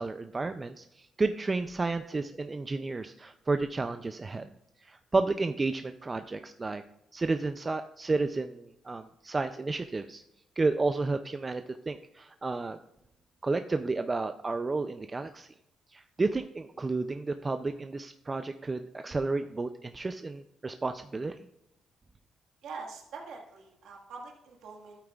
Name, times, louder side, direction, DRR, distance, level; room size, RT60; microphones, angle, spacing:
voice 1, 0.0-4.5 4.8-6.8 7.1-10.2 10.6-12.8 13.4-15.5 15.9-21.4, right 3 dB, 25° right, 9 dB, 0.4 m, -31 dB
voice 2, 22.6-25.0, right 4 dB, 75° right, 0 dB, 1.7 m, -44 dB
12.0 x 8.7 x 2.4 m, 0.85 s
cardioid pair, 90°, 0 cm